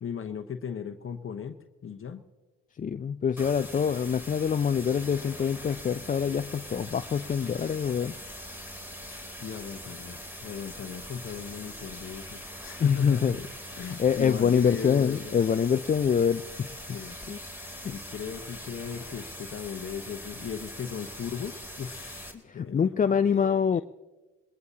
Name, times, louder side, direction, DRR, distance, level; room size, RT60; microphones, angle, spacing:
voice 1, 0.0-2.2 9.0-13.4 13.8-15.3 16.9-17.2 17.8-23.8, left 7 dB, 40° left, 6 dB, 1.1 m, -37 dB
voice 2, 2.8-8.1 12.8-13.4 14.0-17.0 17.3-17.4 17.7-17.9 22.4-23.8, left 7 dB, 25° left, 10 dB, 0.4 m, -25 dB
sound 1, 3.4-22.3, equal, 5° right, 3.2 m, -42 dB
21.5 x 20.0 x 2.8 m, 1.2 s
supercardioid pair, 60°, 32 cm